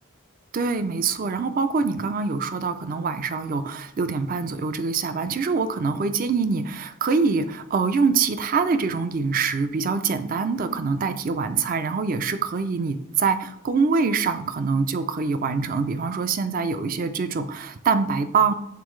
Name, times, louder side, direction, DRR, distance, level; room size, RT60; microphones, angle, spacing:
voice 1, 0.5-18.5, right 5 dB, 40° right, 10 dB, 0.4 m, -24 dB
8.2 x 4.0 x 3.1 m, 0.77 s
head